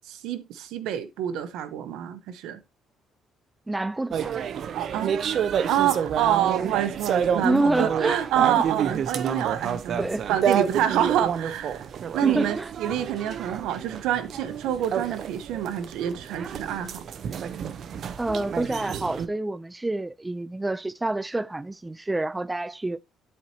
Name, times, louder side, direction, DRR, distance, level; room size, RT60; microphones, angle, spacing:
voice 1, 0.1-2.6 4.7-5.1 5.7-11.9 12.1-17.0, right 11 dB, 85° right, 1.0 m, -27 dB
voice 2, 3.7-4.3 7.4-8.2 8.6-8.7 10.0-10.3 12.2-12.7 18.2-23.0, right 2 dB, 15° right, 0.3 m, -27 dB
sound 1, 4.1-19.3, right 8 dB, 60° right, 0.7 m, -29 dB
11.5 x 4.6 x 2.8 m
cardioid pair, 100°, 0 cm